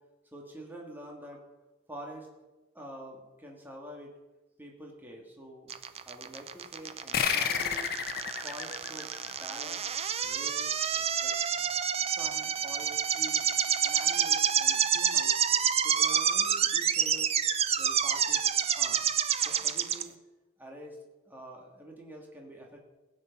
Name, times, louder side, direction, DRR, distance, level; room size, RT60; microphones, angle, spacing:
voice 1, 0.3-1.4 1.9-2.3 2.7-4.1 4.6-5.7 6.0-7.9 8.4-9.9 10.2-10.7 11.2-11.3 12.0-13.5 13.8-15.4 15.8-17.3 17.7-18.5 18.8-19.1 19.4-20.2 20.6-21.0 21.2-22.8, right 1 dB, 10° right, -1 dB, 2.5 m, -46 dB
sound 1, 5.7-20.0, right 8 dB, 35° right, 0.6 m, -28 dB
sound 2, 7.1-10.2, left 7 dB, 55° left, 1.2 m, -32 dB
16.5 x 9.0 x 5.6 m, 1.1 s
head